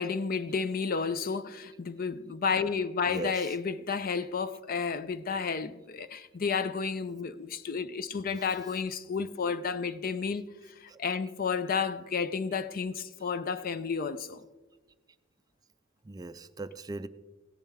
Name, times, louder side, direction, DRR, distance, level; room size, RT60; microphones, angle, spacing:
voice 1, 0.0-14.4, left 5 dB, 50° left, 0.5 m, -32 dB
voice 2, 3.1-3.6 8.3-8.7 16.1-17.1, right 3 dB, 20° right, 0.4 m, -39 dB
16.0 x 10.5 x 3.6 m
head